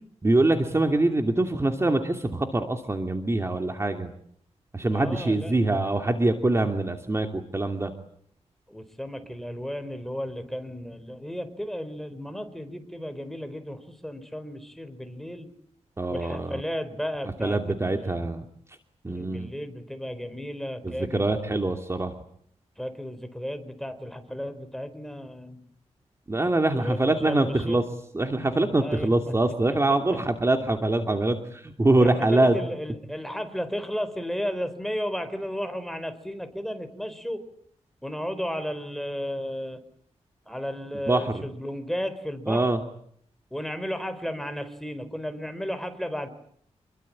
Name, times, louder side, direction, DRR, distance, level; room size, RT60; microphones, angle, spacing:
voice 1, 0.2-4.1 4.7-7.9 16.0-16.6 17.4-18.5 19.0-19.5 20.8-22.1 26.3-27.8 28.1-32.6 40.9-41.4 42.5-42.8, right 2 dB, 25° right, 5 dB, 2.7 m, -24 dB
voice 2, 4.9-5.7 8.7-15.5 16.1-18.3 19.1-21.6 22.8-25.7 26.7-27.8 28.8-29.3 31.9-37.4 38.0-39.8 40.5-42.7 43.5-46.3, equal, ahead, 9 dB, 4.4 m, -34 dB
28.0 x 23.0 x 8.8 m, 0.65 s
wide cardioid pair, 95°, 12 cm